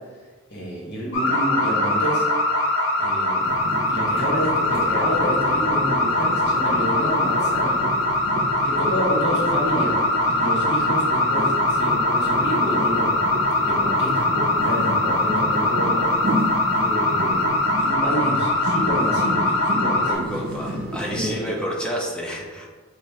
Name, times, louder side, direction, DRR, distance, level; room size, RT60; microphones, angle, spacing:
voice 1, 0.5-2.3 3.0-3.6 3.9-7.8 8.6-9.9 10.3-13.1 13.6-16.1 16.7-20.3 21.1-21.4, equal, 55° left, -5 dB, 1.4 m, -28 dB
sound 1, 1.1-20.1, left 1 dB, 85° left, 0.8 m, -22 dB
sound 2, 3.4-21.4, right 1 dB, 45° right, 0.6 m, -31 dB
voice 2, 20.1-22.7, equal, 5° left, -3 dB, 0.6 m, -29 dB
5.2 x 3.0 x 3.0 m, 1.4 s
head